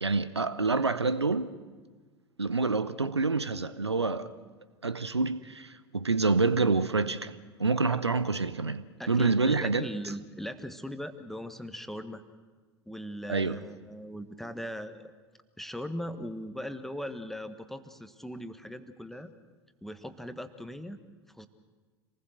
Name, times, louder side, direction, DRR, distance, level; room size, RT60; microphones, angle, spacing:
voice 1, 0.0-1.6 2.4-4.3 4.8-7.3 7.6-9.9 13.3-13.6, right 3 dB, 85° right, 0.7 m, -27 dB
voice 2, 9.0-12.2 12.9-15.1 15.6-19.3 19.8-21.0 21.3-21.5, equal, ahead, 1.3 m, -39 dB
26.5 x 19.5 x 6.6 m
figure-of-eight pair, 80°, 14 cm